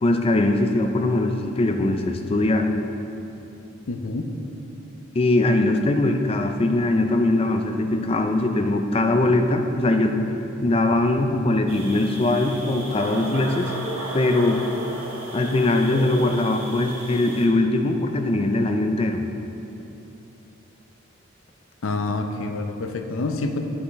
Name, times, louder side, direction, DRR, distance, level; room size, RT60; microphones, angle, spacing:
voice 1, 0.0-2.7 5.1-10.2 10.6-13.7 14.1-14.6 15.3-19.2, left 2 dB, 30° left, 5 dB, 0.4 m, -21 dB
voice 2, 3.9-4.3 21.8-23.6, left 2 dB, 80° left, 5 dB, 0.6 m, -27 dB
sound 1, 11.7-17.5, right 1 dB, 85° right, 1.3 m, -34 dB
10.0 x 5.8 x 3.1 m, 3.0 s
head